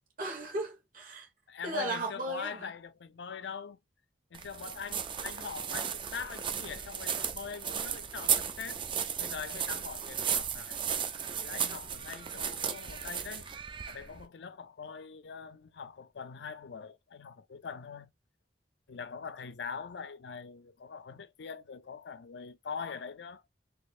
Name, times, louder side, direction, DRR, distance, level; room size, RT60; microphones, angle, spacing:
voice 1, 0.2-1.3 1.6-2.7, right 2 dB, 50° right, 1.4 m, -36 dB
voice 2, 1.5-3.8 4.3-8.8 9.2-10.8 11.3-13.5 13.9-18.1 18.9-23.4, left 6 dB, 80° left, 0.5 m, -43 dB
sound 1, 4.3-14.2, right 8 dB, 30° right, 0.4 m, -35 dB
4.1 x 2.8 x 2.5 m
head